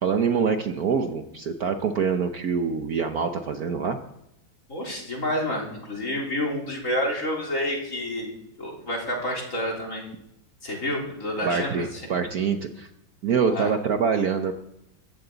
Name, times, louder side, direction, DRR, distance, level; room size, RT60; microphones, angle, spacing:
voice 1, 0.0-4.0 11.4-12.9 13.2-14.5, right 6 dB, 60° right, 6 dB, 1.2 m, -25 dB
voice 2, 4.7-10.1 10.6-12.1 13.5-13.7, left 1 dB, 40° left, -2 dB, 4.2 m, -29 dB
22.0 x 15.0 x 4.0 m, 0.82 s
omnidirectional pair, 2.1 m